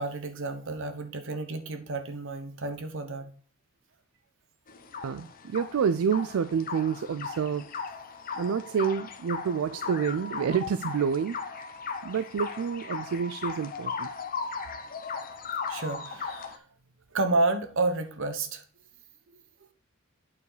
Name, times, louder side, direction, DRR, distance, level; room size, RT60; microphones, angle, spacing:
voice 1, 0.0-3.3 15.7-16.6 17.1-18.6, right 2 dB, 65° right, 7 dB, 1.1 m, -30 dB
sound 1, 4.7-16.6, left 5 dB, 40° left, 0.8 m, -37 dB
voice 2, 5.0-7.7 8.4-11.4 12.0-14.1, right 7 dB, 80° right, 14 dB, 0.4 m, -28 dB
8.4 x 4.7 x 4.9 m, 0.43 s
head